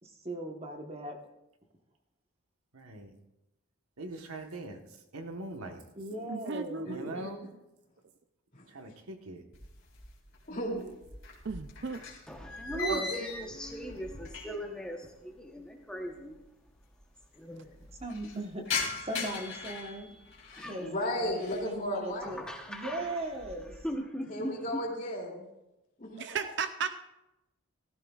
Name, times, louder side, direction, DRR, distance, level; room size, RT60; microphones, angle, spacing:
voice 1, 0.0-1.2 5.9-6.9 18.0-18.6 19.0-20.1 20.6-22.4 22.7-23.8, right 1 dB, 25° right, 2 dB, 1.2 m, -39 dB
voice 2, 2.7-3.1 4.0-4.8 5.1-5.8 6.8-7.4 8.7-9.4, right 2 dB, 90° right, 5 dB, 1.3 m, -41 dB
voice 3, 6.3-7.1 11.4-12.0 12.7-13.0 18.3-18.5 26.2-27.0, right 5 dB, 55° right, 10 dB, 0.5 m, -34 dB
voice 4, 6.8-7.3 8.5-8.6 10.5-11.0 12.9-13.0 20.5-22.4 24.3-25.4 26.0-26.5, equal, 35° left, -2 dB, 2.8 m, -35 dB
sound 1, 9.5-10.4 10.7-14.8 15.1-15.2 16.0-16.1 16.3-16.4 16.7-17.2 17.6-20.8 21.2-21.7 22.2-22.6 23.0-23.9, left 4 dB, 60° left, 2.7 m, -40 dB
voice 5, 12.3-16.4 17.3-17.7 20.6-20.8 22.2-23.2 23.8-24.6, equal, 5° left, 1 dB, 1.0 m, -40 dB
16.0 x 14.0 x 2.4 m, 0.93 s
head